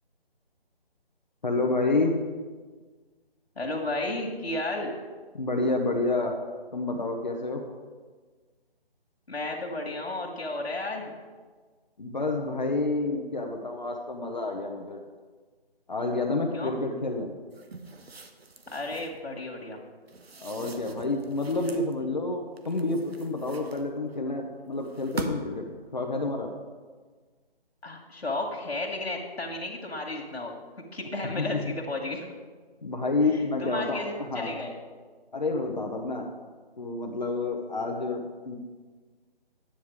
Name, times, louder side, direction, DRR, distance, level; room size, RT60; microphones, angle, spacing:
voice 1, 1.4-2.2 5.3-6.3 6.7-7.6 12.0-15.0 15.9-17.3 20.4-25.7 25.9-26.5 31.3-31.6 32.8-34.7 35.3-36.3 36.8-38.6, left 3 dB, 45° left, 2 dB, 0.9 m, -29 dB
voice 2, 3.6-4.9 9.3-11.1 16.5-16.7 18.7-19.8 27.8-30.5 30.9-32.3 33.2-34.7, left 2 dB, 85° left, -1 dB, 2.0 m, -33 dB
sound 1, 17.5-19.2 20.1-21.9 22.6-24.2 24.8-25.6, right 3 dB, 75° right, 1.1 m, -41 dB
10.0 x 7.4 x 4.8 m, 1.4 s
figure-of-eight pair, 175°, 31 cm